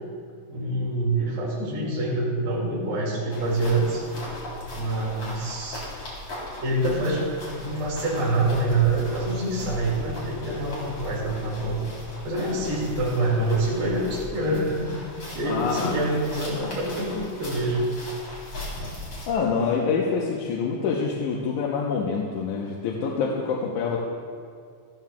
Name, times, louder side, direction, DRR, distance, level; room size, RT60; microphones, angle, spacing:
voice 1, 0.5-4.0 4.7-5.8 6.6-11.8 12.2-14.9 15.3-17.9, right 2 dB, 45° right, -6 dB, 3.0 m, -26 dB
sound 1, 3.3-19.3, left 1 dB, 45° left, 4.5 m, -38 dB
voice 2, 15.5-16.2 19.3-24.0, left 5 dB, 85° left, -3 dB, 2.4 m, -26 dB
15.0 x 14.5 x 2.4 m, 2.2 s
omnidirectional pair, 3.5 m